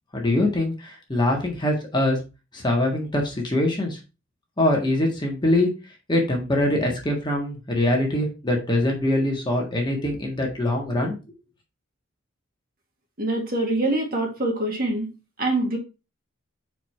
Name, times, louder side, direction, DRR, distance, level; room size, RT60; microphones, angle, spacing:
voice 1, 0.1-2.2 2.5-4.0 4.6-5.7 6.1-11.1, left 1 dB, 20° left, 0 dB, 1.6 m, -23 dB
voice 2, 13.2-15.1 15.4-15.8, right 2 dB, 45° right, 1 dB, 1.9 m, -24 dB
4.8 x 4.1 x 5.6 m, 0.29 s
head